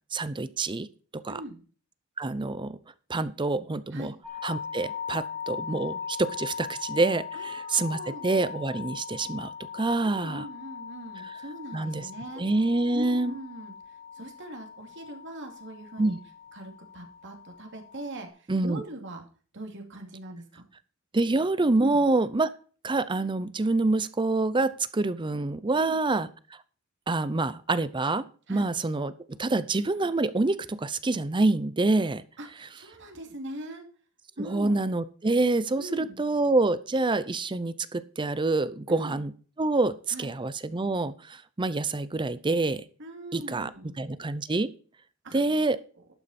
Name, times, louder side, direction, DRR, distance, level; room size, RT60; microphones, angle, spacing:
voice 1, 0.1-0.9 1.2-1.4 2.2-2.8 3.1-4.1 4.4-10.5 11.7-12.1 12.4-13.4 16.0-16.2 18.5-18.8 21.1-22.5 22.8-26.3 27.1-29.1 29.4-32.2 34.4-39.3 39.6-42.8 43.3-43.7 44.0-44.7 45.3-45.8, right 2 dB, 20° right, 15 dB, 0.6 m, -26 dB
voice 2, 1.3-1.6 3.9-4.1 7.3-8.3 10.0-12.4 12.9-16.2 16.5-19.2 19.5-20.6 21.8-22.0 25.7-26.0 28.5-28.7 32.4-33.8 34.4-34.9 35.8-36.3 38.9-39.2 40.1-40.3 43.0-44.0 45.2-45.4, right 1 dB, 60° right, 3 dB, 2.5 m, -41 dB
sound 1, 4.2-18.3, left 6 dB, 5° left, 2.4 m, -40 dB
12.0 x 8.7 x 4.3 m, 0.39 s
head